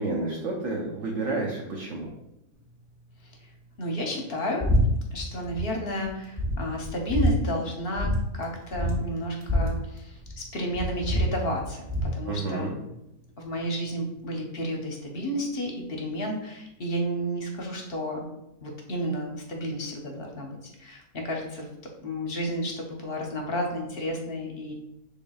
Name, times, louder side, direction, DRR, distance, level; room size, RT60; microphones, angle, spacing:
voice 1, 0.0-2.1 12.3-12.8, right 3 dB, 60° right, -3 dB, 1.0 m, -30 dB
voice 2, 3.8-4.7 5.1-12.7 13.4-18.2 18.6-21.7 22.0-24.7, equal, 50° left, 1 dB, 0.9 m, -32 dB
sound 1, 4.6-4.8 5.1-5.6 6.0-6.1 6.4-7.3 8.0-8.2 8.4-8.5 8.7-10.4 10.7-12.1, equal, 20° right, 0.8 m, -25 dB
6.0 x 3.5 x 2.3 m, 0.86 s
omnidirectional pair, 1.6 m